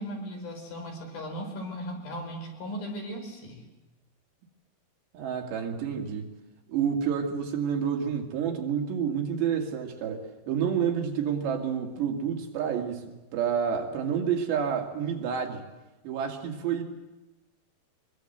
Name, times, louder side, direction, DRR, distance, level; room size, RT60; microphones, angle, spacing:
voice 1, 0.0-3.7, equal, 60° left, 3 dB, 6.2 m, -37 dB
voice 2, 5.1-6.3 6.7-15.6 16.0-16.8, right 7 dB, 80° right, 2 dB, 4.5 m, -29 dB
24.0 x 22.0 x 8.0 m, 1.1 s
omnidirectional pair, 4.9 m